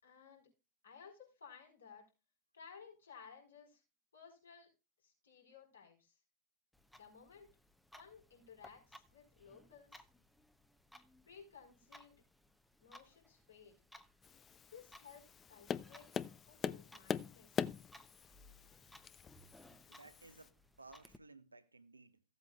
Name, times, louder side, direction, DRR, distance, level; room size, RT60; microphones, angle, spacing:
voice 1, 0.0-0.5 0.8-2.0 2.5-3.8 4.1-4.7 5.0-6.2 6.9-7.5 8.0-10.0 11.3-12.2 12.8-13.8 14.7-16.1 16.5-17.6, left 6 dB, 75° left, 4.6 m, -58 dB
Clock, 6.7-21.2, left 1 dB, 5° left, 0.8 m, -63 dB
Tap, 14.2-20.5, left 7 dB, 25° left, 0.4 m, -43 dB
voice 2, 19.9-22.2, right 3 dB, 80° right, 0.9 m, -58 dB
16.0 x 8.2 x 2.4 m
figure-of-eight pair, 90°, 0 cm